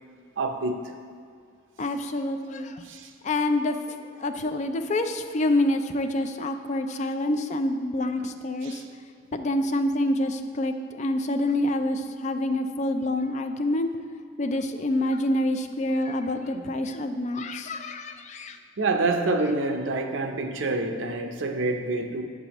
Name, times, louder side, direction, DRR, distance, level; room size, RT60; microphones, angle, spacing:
voice 1, 0.4-0.9 2.8-3.1 8.6-8.8 16.5-16.6 18.8-22.2, right 2 dB, 80° right, 6 dB, 0.6 m, -27 dB
voice 2, 1.8-2.8 3.2-8.8 9.3-13.9 14.4-18.6, left 1 dB, 35° left, 7 dB, 0.4 m, -27 dB
8.3 x 6.8 x 2.9 m, 2.2 s
head